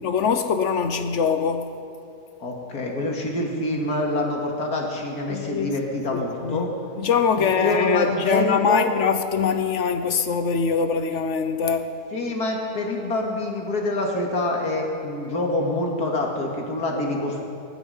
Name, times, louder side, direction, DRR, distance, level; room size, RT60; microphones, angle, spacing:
voice 1, 0.0-1.7 5.3-6.7 6.9-11.9, left 6 dB, 55° left, 8 dB, 1.0 m, -23 dB
voice 2, 2.4-6.7 7.4-8.9 12.1-17.4, left 2 dB, 70° left, -1 dB, 2.6 m, -26 dB
19.5 x 12.0 x 5.6 m, 2.6 s
omnidirectional pair, 1.7 m